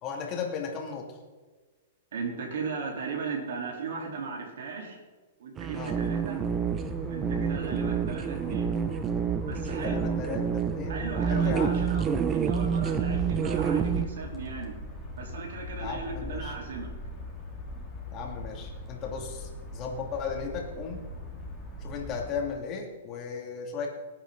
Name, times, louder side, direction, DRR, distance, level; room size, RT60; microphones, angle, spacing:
voice 1, 0.0-1.2 5.7-6.0 9.7-11.0 11.3-11.8 15.8-16.5 18.1-21.0 21.8-23.9, left 5 dB, 30° left, 0 dB, 2.5 m, -36 dB
voice 2, 2.1-5.0 5.4-6.4 7.1-8.7 9.5-10.0 10.9-12.1 12.3-14.8 15.1-16.9, right 4 dB, 75° right, 0 dB, 3.8 m, -37 dB
sound 1, 5.6-14.1, right 7 dB, 20° right, 0.7 m, -28 dB
sound 2, 6.3-22.4, left 1 dB, 5° left, 2.9 m, -40 dB
19.5 x 9.1 x 4.0 m, 1.3 s
hypercardioid pair, 155°, 0 cm